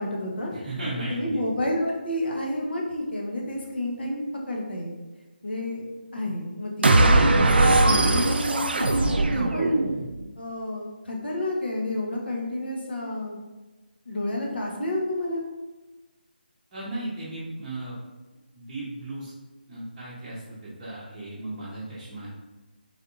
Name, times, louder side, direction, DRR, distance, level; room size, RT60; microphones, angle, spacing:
voice 1, 0.0-0.5 1.0-4.9 5.4-5.9 6.1-9.8 10.4-13.4 14.1-15.5, left 1 dB, 75° left, -1 dB, 0.8 m, -30 dB
voice 2, 0.5-1.4 16.7-18.0 18.5-19.3 19.7-22.3, right 2 dB, 20° right, -12 dB, 0.7 m, -35 dB
sound 1, 6.8-10.2, right 2 dB, 75° right, 0.3 m, -20 dB
3.4 x 2.6 x 2.5 m, 1.1 s
figure-of-eight pair, 160°, 6 cm